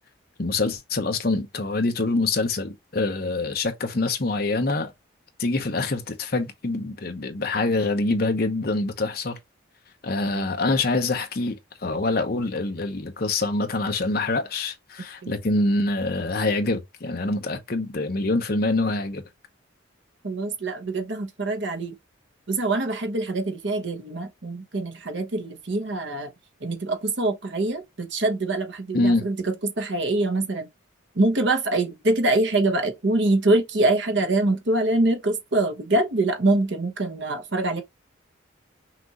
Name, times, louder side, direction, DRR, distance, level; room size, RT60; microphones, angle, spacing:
voice 1, 0.4-4.9 5.4-9.4 10.0-19.2 28.9-29.3, left 2 dB, 50° left, 0.8 m, -25 dB
voice 2, 20.2-21.9 22.5-26.3 26.6-30.7 31.1-37.8, right 2 dB, 60° right, 1.0 m, -24 dB
5.9 x 2.5 x 2.9 m
head